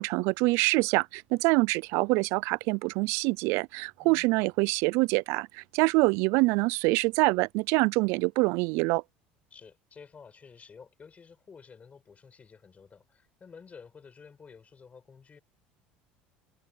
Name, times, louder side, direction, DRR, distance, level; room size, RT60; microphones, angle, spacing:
voice 1, 0.0-9.0, right 25 dB, 70° right, 0.5 m, -25 dB
voice 2, 4.0-4.3 9.5-15.4, left 5 dB, 30° left, 5.1 m, -51 dB
supercardioid pair, 85°, 5 cm